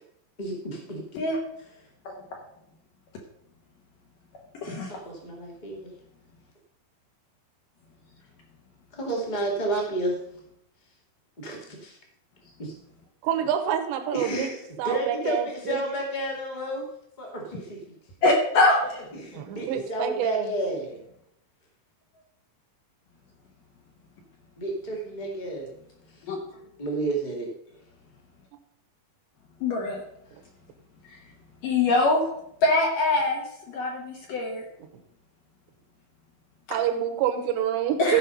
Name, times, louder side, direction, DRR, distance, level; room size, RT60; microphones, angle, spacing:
voice 1, 0.4-1.2 4.9-5.9 8.9-10.2 11.4-12.0 12.6-12.7 14.1-16.8 17.2-17.8 19.1-21.0 24.6-25.7 26.1-26.2 26.8-27.5, right 1 dB, 40° left, 0 dB, 0.6 m, -31 dB
voice 2, 13.2-14.5 14.8-15.8 19.3-20.5 36.7-38.2, right 10 dB, 75° right, 6 dB, 3.2 m, -27 dB
voice 3, 18.2-19.0 26.3-26.4 29.6-30.0 31.6-32.2 32.6-33.4 33.7-34.6 38.0-38.2, left 2 dB, 65° left, 0 dB, 2.4 m, -23 dB
14.5 x 5.4 x 5.4 m, 0.76 s
omnidirectional pair, 5.2 m